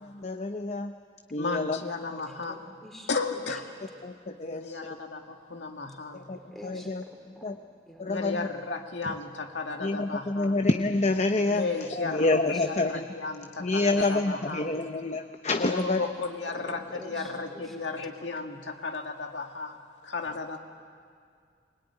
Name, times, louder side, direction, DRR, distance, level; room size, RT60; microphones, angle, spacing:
voice 1, 0.0-0.9 1.3-1.8 2.1-2.2 4.0-5.0 6.1-7.0 7.4-7.6 8.0-8.4 9.1-9.2 9.8-13.1 13.6-16.1, left 2 dB, 40° left, 7 dB, 0.7 m, -28 dB
voice 2, 1.4-2.6 3.1-3.6 4.4-6.3 8.1-10.6 11.5-12.6 12.8-14.7 15.7-19.8 20.0-20.6, left 4 dB, 80° left, 3 dB, 1.9 m, -34 dB
voice 3, 2.3-3.1 6.1-7.5 7.9-8.1 11.7-11.8 12.5-12.7 13.1-13.3 16.5-17.8 18.0-18.1, equal, ahead, 0 dB, 3.6 m, -47 dB
22.0 x 21.5 x 9.9 m, 2.2 s
head